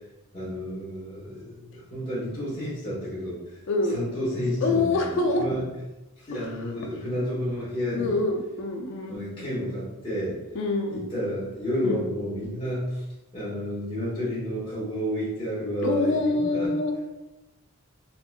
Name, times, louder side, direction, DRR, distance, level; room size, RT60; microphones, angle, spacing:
voice 1, 0.3-3.4 3.9-5.7 6.2-8.2 9.1-10.4 10.9-13.0 13.3-16.7, equal, 25° left, -11 dB, 1.1 m, -31 dB
voice 2, 3.7-4.0 4.6-5.5 6.3-6.5 6.8-6.9 7.9-9.2 10.5-11.1 11.8-12.1 15.8-17.0, left 2 dB, 55° left, 2 dB, 0.4 m, -26 dB
3.6 x 3.0 x 2.3 m, 1.0 s
head